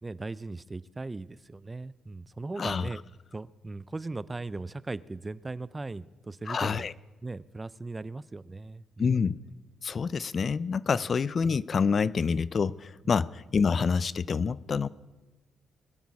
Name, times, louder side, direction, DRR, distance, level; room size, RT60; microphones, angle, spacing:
voice 1, 0.0-3.0 3.3-6.9 7.2-9.1, right 3 dB, 20° right, 19 dB, 0.4 m, -38 dB
voice 2, 2.6-2.9 6.5-6.9 9.0-9.4 9.8-14.9, left 5 dB, 45° left, 19 dB, 0.4 m, -27 dB
21.5 x 8.2 x 4.8 m, 1.2 s
cardioid pair, 90°, 0 cm